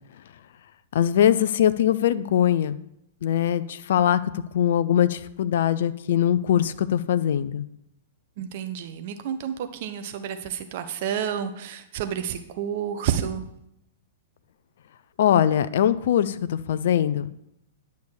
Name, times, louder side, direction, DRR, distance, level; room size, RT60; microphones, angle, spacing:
voice 1, 0.9-2.8 3.2-4.2 4.5-7.6 15.2-17.3, left 10 dB, 60° left, 14 dB, 0.5 m, -21 dB
voice 2, 8.4-9.5 9.8-13.4, right 9 dB, 50° right, 8 dB, 1.1 m, -30 dB
10.5 x 7.0 x 4.9 m, 0.79 s
figure-of-eight pair, 105°, 0 cm